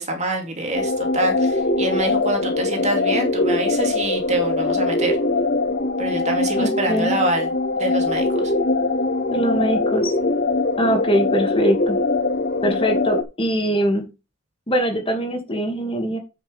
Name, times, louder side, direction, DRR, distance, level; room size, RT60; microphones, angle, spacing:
voice 1, 0.0-5.2 6.0-8.5, right 2 dB, 35° right, 3 dB, 2.8 m, -26 dB
sound 1, 0.7-13.2, left 2 dB, 50° left, 0.8 m, -22 dB
voice 2, 6.5-7.1 9.3-10.1 10.8-12.0 12.6-14.1 14.7-16.2, right 1 dB, 25° left, 4 dB, 2.3 m, -22 dB
9.7 x 6.8 x 3.5 m, 0.28 s
head